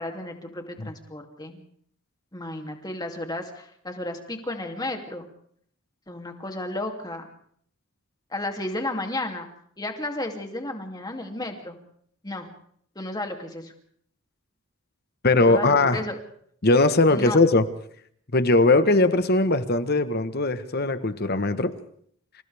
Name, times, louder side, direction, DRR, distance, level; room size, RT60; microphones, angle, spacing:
voice 1, 0.0-1.6 2.3-5.3 6.1-7.3 8.3-9.5 9.8-11.8 12.2-12.5 12.9-13.7 15.4-16.2 17.1-17.4, left 1 dB, 20° left, 3 dB, 2.8 m, -33 dB
voice 2, 15.2-16.0 16.6-17.6 18.3-21.7, left 2 dB, 50° left, 11 dB, 1.3 m, -20 dB
29.0 x 27.5 x 3.6 m, 0.64 s
head